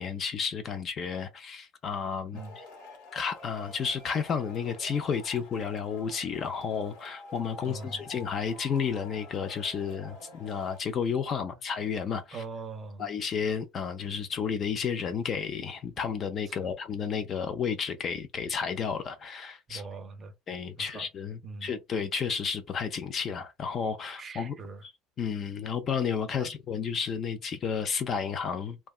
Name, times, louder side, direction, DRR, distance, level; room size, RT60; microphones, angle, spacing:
voice 1, 0.0-2.6 3.1-12.4 13.0-19.8 20.5-24.6 24.8-24.9 25.2-28.8, left 6 dB, 30° left, 0.3 m, -32 dB
Male speech man speaking / Shout / Clapping, 2.3-10.8, left 2 dB, 75° left, 1.0 m, -48 dB
voice 2, 7.6-8.1 11.4-11.6 12.3-13.1 16.6-16.8 19.7-20.3 20.8-21.1 21.4-21.8 24.2-24.8 26.4-26.5, right 4 dB, 20° right, 0.5 m, -42 dB
2.8 x 2.2 x 2.3 m
cardioid pair, 165°, 0 cm